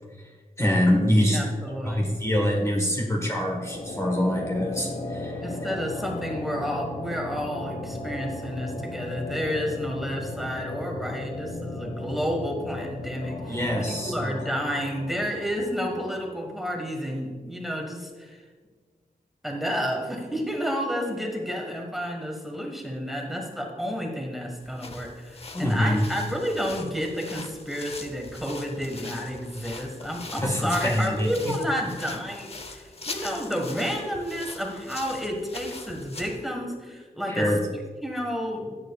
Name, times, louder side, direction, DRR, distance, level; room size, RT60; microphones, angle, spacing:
voice 1, 0.6-1.4 1.8-5.4 13.5-14.4 25.5-26.0 30.4-31.5 37.3-37.6, left 1 dB, 20° left, -1 dB, 1.4 m, -24 dB
voice 2, 1.3-2.1 5.4-13.6 13.9-18.4 19.4-38.8, equal, ahead, 1 dB, 1.6 m, -31 dB
sound 1, 3.4-16.5, left 2 dB, 60° left, 1.2 m, -36 dB
sound 2, 24.6-36.5, left 3 dB, 40° left, 0.8 m, -41 dB
16.5 x 7.7 x 2.4 m, 1.4 s
wide cardioid pair, 110°, 15 cm